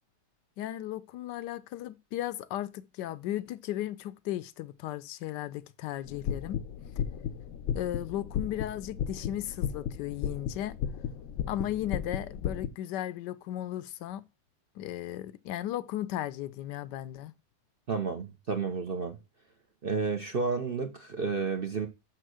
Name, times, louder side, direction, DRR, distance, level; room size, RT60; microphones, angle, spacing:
voice 1, 0.6-6.6 7.7-10.7 11.5-14.2 14.8-17.3, left 13 dB, 80° left, 1.2 m, -36 dB
sound 1, 6.1-12.7, left 8 dB, 65° left, 0.8 m, -35 dB
voice 2, 17.9-19.2 19.8-21.9, right 4 dB, 50° right, 0.7 m, -31 dB
6.5 x 4.5 x 6.3 m
omnidirectional pair, 1.9 m